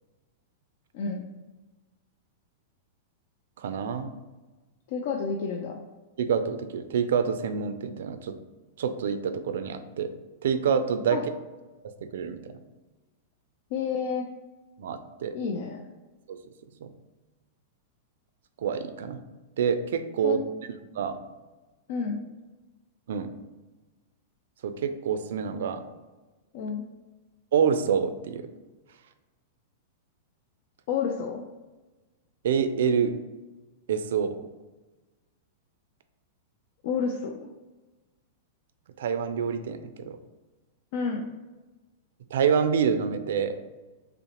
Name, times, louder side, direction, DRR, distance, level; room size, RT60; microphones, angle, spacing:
voice 1, 3.6-4.1 6.2-8.4 8.8-10.1 10.4-11.2 12.1-12.5 14.8-15.3 16.3-16.4 16.8-16.9 18.6-19.2 19.6-20.4 20.9-21.2 23.1-23.3 24.6-25.8 27.5-28.5 32.4-33.1 33.9-34.4 39.0-40.2 42.3-43.6, right 7 dB, 75° right, 9 dB, 0.4 m, -27 dB
voice 2, 4.9-5.8 11.1-11.2 13.7-14.3 15.3-15.8 20.2-20.4 21.9-22.2 26.5-26.8 30.9-31.4 36.8-37.4 40.9-41.3, left 5 dB, 55° left, 2 dB, 0.4 m, -30 dB
5.6 x 2.1 x 2.9 m, 1.2 s
supercardioid pair, 150°, 0 cm